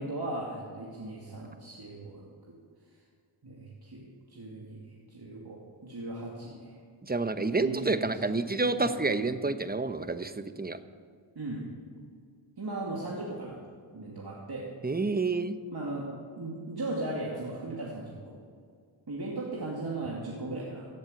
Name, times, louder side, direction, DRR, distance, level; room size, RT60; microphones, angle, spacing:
voice 1, 0.0-2.3 3.4-4.8 5.1-6.8 7.6-8.2 8.6-9.2 11.4-11.6 12.6-13.6 13.9-14.7 15.7-16.1 16.3-18.3 19.1-20.9, right 2 dB, 50° right, -4 dB, 2.5 m, -37 dB
voice 2, 7.0-10.8 14.8-15.6, right 3 dB, 20° right, 10 dB, 0.8 m, -29 dB
16.0 x 7.9 x 8.0 m, 2.1 s
cardioid pair, 55°, 49 cm